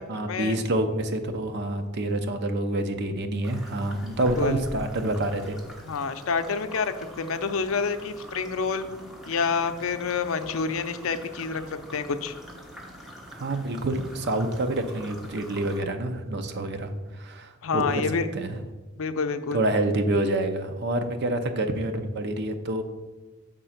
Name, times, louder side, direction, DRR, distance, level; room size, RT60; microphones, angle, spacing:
voice 1, 0.1-5.6 13.3-18.6 19.5-22.8, right 1 dB, 55° right, 7 dB, 0.6 m, -27 dB
sound 1, 3.4-15.8, equal, ahead, 1.2 m, -44 dB
voice 2, 5.9-9.0 9.3-11.6 11.9-12.3 17.6-18.3 19.0-19.6, left 5 dB, 75° left, 9 dB, 0.5 m, -28 dB
6.9 x 3.7 x 5.8 m, 1.2 s
head